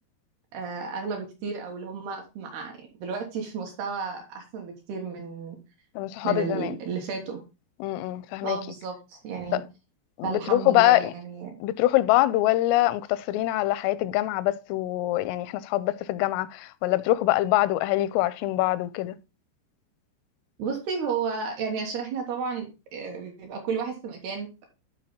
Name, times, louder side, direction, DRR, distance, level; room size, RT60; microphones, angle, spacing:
voice 1, 0.5-5.6 6.2-7.4 8.4-9.6 10.2-11.6 20.6-24.7, right 5 dB, 70° right, 2.7 m, -33 dB
voice 2, 6.0-6.8 7.8-8.6 9.5-9.6 10.2-11.1 11.6-19.2, left 16 dB, 90° left, 3.2 m, -24 dB
12.0 x 4.6 x 3.6 m
omnidirectional pair, 5.7 m